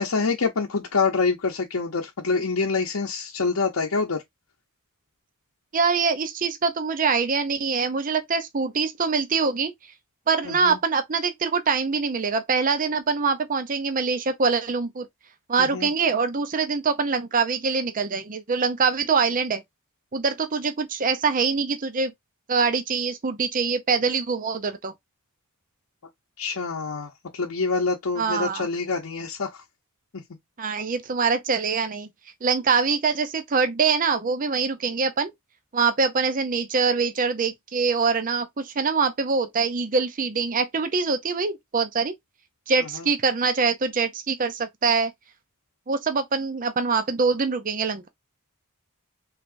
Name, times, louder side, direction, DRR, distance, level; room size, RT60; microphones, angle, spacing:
voice 1, 0.0-4.2 10.4-10.8 15.6-15.9 26.4-29.6 30.1-30.2 42.9-43.1, left 4 dB, 70° left, 0.8 m, -26 dB
voice 2, 5.7-9.7 10.3-15.1 15.5-19.6 20.1-22.1 22.5-24.9 28.2-28.7 30.6-32.1 32.4-35.3 35.7-42.1 42.7-45.1 45.9-48.1, right 5 dB, 40° right, 0.6 m, -24 dB
4.8 x 3.3 x 2.6 m
head